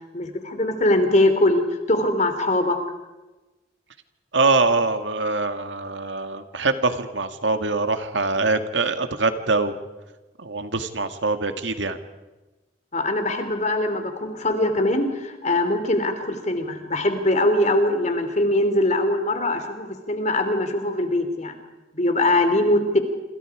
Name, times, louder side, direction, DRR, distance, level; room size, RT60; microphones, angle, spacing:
voice 1, 0.1-2.8 12.9-21.6 21.9-23.0, left 1 dB, 40° left, 8 dB, 3.2 m, -22 dB
voice 2, 4.3-9.7 10.4-12.0, right 3 dB, 85° right, 8 dB, 2.0 m, -23 dB
27.5 x 26.5 x 5.0 m, 1.1 s
head